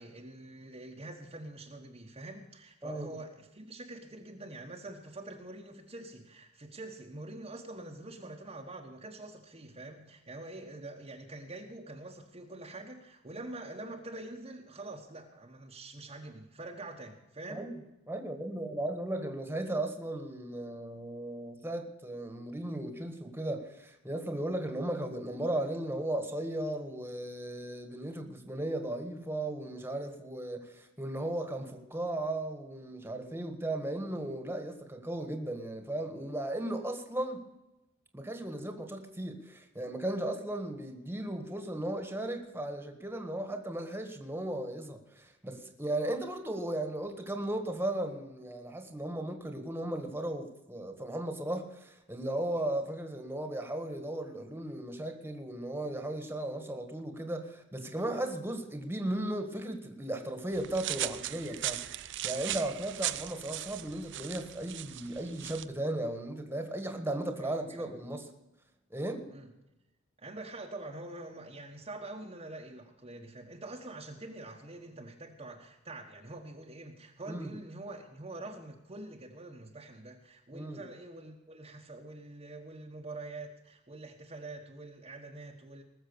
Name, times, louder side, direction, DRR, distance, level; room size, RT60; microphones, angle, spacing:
voice 1, 0.0-17.7 67.4-67.8 69.3-69.5 70.2-85.8, right 2 dB, 30° right, 1.3 m, -45 dB
voice 2, 2.8-3.1 17.5-17.7 18.1-37.4 38.1-61.8 62.2-68.3 68.9-69.3 77.3-77.5 80.5-80.8, right 1 dB, 10° right, 1.7 m, -36 dB
sound 1, 60.5-65.6, right 13 dB, 65° right, 0.6 m, -38 dB
19.5 x 7.3 x 6.9 m
head